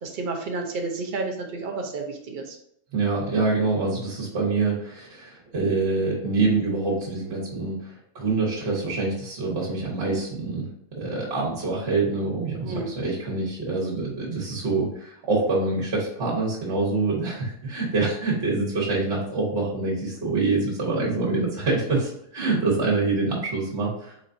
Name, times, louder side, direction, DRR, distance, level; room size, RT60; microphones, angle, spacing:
voice 1, 0.0-2.6 12.6-12.9 22.4-22.7, right 3 dB, 65° right, 2 dB, 0.5 m, -31 dB
voice 2, 2.9-10.7 10.9-24.1, right 3 dB, 45° right, -4 dB, 1.3 m, -25 dB
4.1 x 4.0 x 2.6 m, 0.73 s
omnidirectional pair, 1.7 m